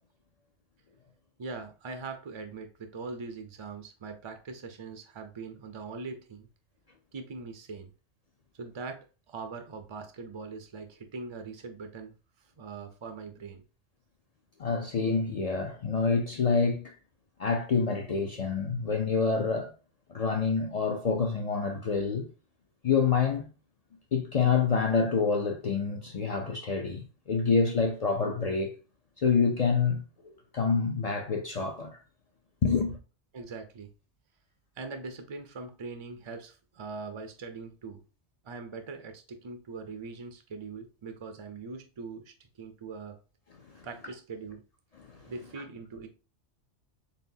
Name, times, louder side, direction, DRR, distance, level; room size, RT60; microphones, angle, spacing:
voice 1, 1.4-6.5 7.1-7.9 8.6-12.1 12.6-13.6 33.3-33.9 34.8-38.0 38.4-43.2 43.8-44.6 45.3-46.1, right 4 dB, 55° right, 0.3 m, -41 dB
voice 2, 14.6-16.9 17.4-19.7 20.1-22.3 22.8-23.5 24.1-28.7 29.2-30.0 30.5-32.0 32.6-33.0 43.7-43.8 45.1-45.3, left 5 dB, 65° left, 0.3 m, -27 dB
4.2 x 3.5 x 2.6 m
omnidirectional pair, 1.2 m